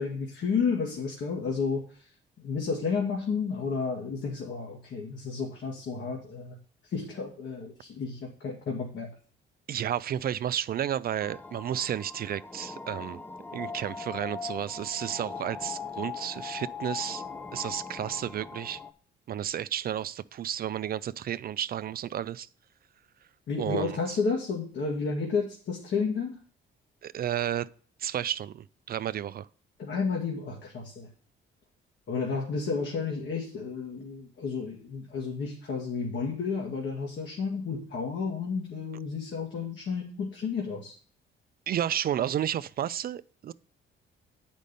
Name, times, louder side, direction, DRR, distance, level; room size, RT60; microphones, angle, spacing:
voice 1, 0.0-2.1 2.4-6.6 6.8-9.1 23.5-26.4 29.8-31.1 32.1-41.0, left 5 dB, 65° left, 2.0 m, -31 dB
voice 2, 9.7-13.2 13.5-17.2 17.5-18.8 19.3-22.5 23.6-23.9 27.0-27.7 28.0-29.5 41.7-43.5, right 10 dB, 50° right, 0.4 m, -32 dB
sound 1, 11.2-18.9, left 5 dB, 10° left, 0.6 m, -40 dB
8.4 x 5.2 x 5.2 m
cardioid pair, 90°, 20 cm